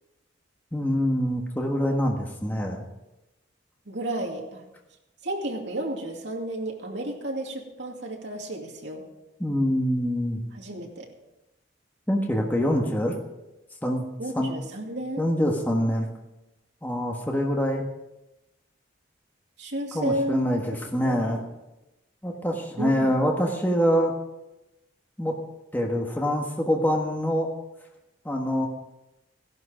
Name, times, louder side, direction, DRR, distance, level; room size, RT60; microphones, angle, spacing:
voice 1, 0.7-2.8 9.4-10.4 12.1-13.1 13.8-14.0 14.3-14.5 15.2-16.1 16.8-17.8 19.9-21.4 22.2-24.2 25.2-25.3 25.7-27.5 28.2-28.7, equal, 10° left, 0 dB, 1.5 m, -25 dB
voice 2, 3.9-4.6 5.2-9.0 10.5-11.1 14.2-15.3 19.6-21.4 22.8-23.1, right 1 dB, 60° right, 0 dB, 2.6 m, -32 dB
15.5 x 11.5 x 5.0 m, 0.97 s
head